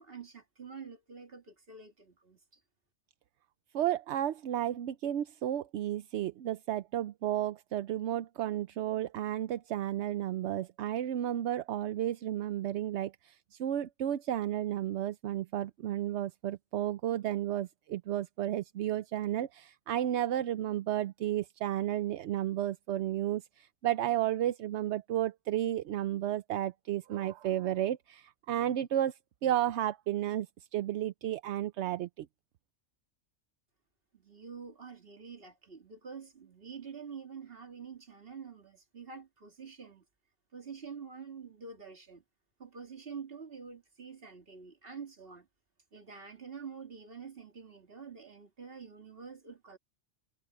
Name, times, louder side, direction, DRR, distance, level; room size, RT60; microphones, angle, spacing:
voice 1, 0.0-2.4 34.1-40.0 40.5-42.2 42.6-45.5 45.9-49.8, right 6 dB, 55° right, 2.4 m, -47 dB
voice 2, 3.7-13.3 13.6-29.1 29.4-30.5 30.7-32.3, right 12 dB, 80° right, 0.9 m, -32 dB
omnidirectional pair, 1.2 m